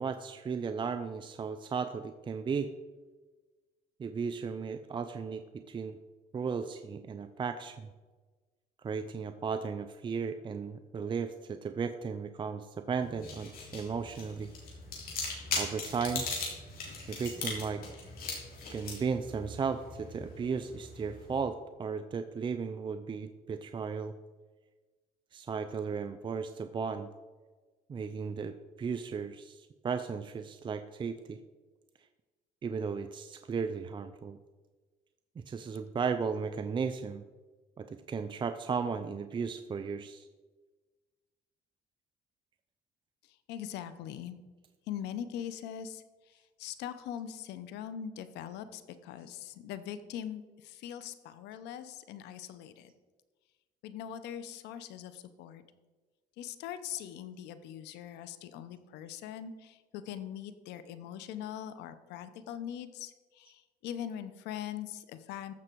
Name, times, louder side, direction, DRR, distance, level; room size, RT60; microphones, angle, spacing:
voice 1, 0.0-2.7 4.0-6.0 6.3-7.9 8.8-14.5 15.5-16.3 17.1-17.8 18.7-24.1 25.3-27.1 27.9-31.4 32.6-34.4 35.4-37.2 37.8-40.3, right 5 dB, 30° right, 9 dB, 0.5 m, -35 dB
sound 1, 13.0-21.4, left 3 dB, 60° left, 3.5 m, -40 dB
voice 2, 43.3-44.4 44.9-52.9 53.8-55.6 56.4-65.5, left 9 dB, 85° left, 12 dB, 0.8 m, -42 dB
14.5 x 6.1 x 4.6 m, 1.3 s
cardioid pair, 110°, 17 cm